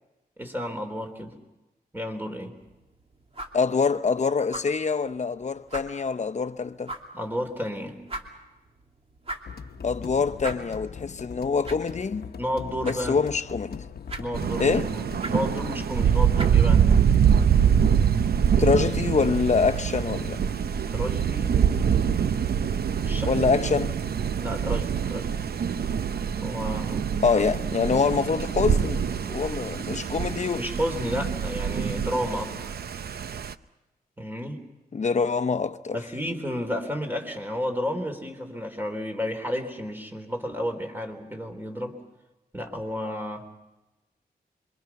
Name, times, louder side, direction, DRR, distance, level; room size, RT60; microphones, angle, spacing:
voice 1, 0.4-1.3 1.9-2.6 7.1-8.0 12.4-13.2 14.2-16.8 20.9-21.6 23.0-23.3 23.6-23.7 24.4-25.3 26.4-27.2 30.6-32.8 34.2-34.6 35.9-41.9 42.5-43.5, equal, 10° right, 3.7 m, -32 dB
sound 1, 2.6-17.4, right 2 dB, 40° right, 2.8 m, -43 dB
voice 2, 3.5-6.9 9.8-12.2 12.8-13.8 14.6-14.9 18.6-20.4 23.3-24.0 27.2-30.6 34.9-36.0, left 5 dB, 45° left, 0.9 m, -25 dB
sound 2, 9.5-15.9, left 6 dB, 75° left, 1.0 m, -40 dB
Thunder, 14.3-33.5, right 7 dB, 80° right, 0.7 m, -24 dB
26.5 x 24.0 x 6.0 m
wide cardioid pair, 85°, 16 cm